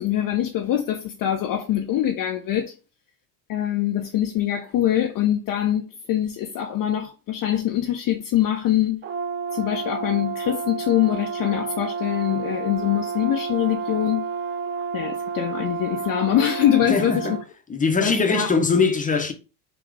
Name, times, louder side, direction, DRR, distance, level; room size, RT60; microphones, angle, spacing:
voice 1, 0.0-2.7 3.5-9.0 9.5-14.3 14.9-17.4 18.0-18.5, left 11 dB, 45° left, 0.7 m, -23 dB
Brass instrument, 9.0-17.5, right 5 dB, 25° right, 0.4 m, -30 dB
voice 2, 16.9-17.4 17.7-19.3, left 4 dB, 15° left, 0.9 m, -21 dB
3.7 x 2.9 x 4.7 m
hypercardioid pair, 80°, 48 cm